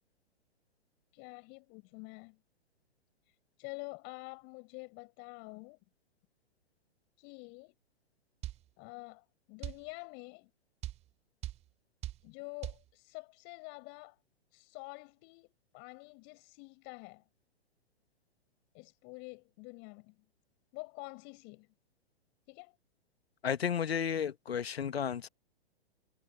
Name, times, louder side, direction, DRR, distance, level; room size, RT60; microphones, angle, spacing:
voice 1, 1.1-2.4 3.6-5.8 7.2-7.7 8.8-10.5 12.2-14.2 14.5-17.2 18.7-20.1 20.7-21.7 22.5-22.7, left 32 dB, 35° left, 5.3 m, -48 dB
sound 1, 8.4-8.6 9.6-9.8 10.8-11.0 11.4-11.6 12.0-12.2 12.6-12.8, right 14 dB, 20° right, 1.0 m, -39 dB
voice 2, 23.4-25.3, left 8 dB, 70° left, 1.3 m, -33 dB
figure-of-eight pair, 110°, 32 cm